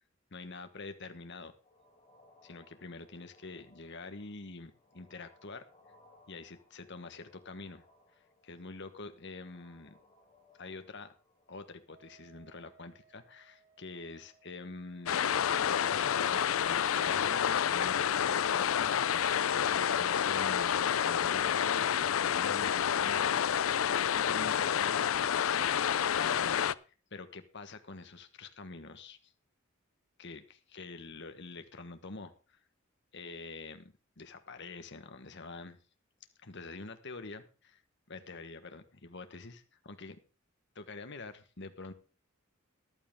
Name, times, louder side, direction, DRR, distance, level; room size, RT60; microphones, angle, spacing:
voice 1, 0.3-1.5 2.4-5.6 6.3-7.8 8.4-10.0 10.6-11.1 11.5-15.2 15.6-23.8 24.1-26.7 27.1-29.3 30.2-32.6 33.1-35.8 36.4-37.8 38.1-39.6 40.0-40.1 40.8-41.9, left 3 dB, 60° left, 8 dB, 1.4 m, -46 dB
sound 1, 1.6-20.3, left 2 dB, 25° left, 6.9 m, -67 dB
Wind instrument woodwind instrument, 11.9-15.5, right 6 dB, 55° right, 4.6 m, -65 dB
sound 2, 15.1-26.7, left 9 dB, 80° left, 0.5 m, -29 dB
14.0 x 11.5 x 3.6 m, 0.35 s
head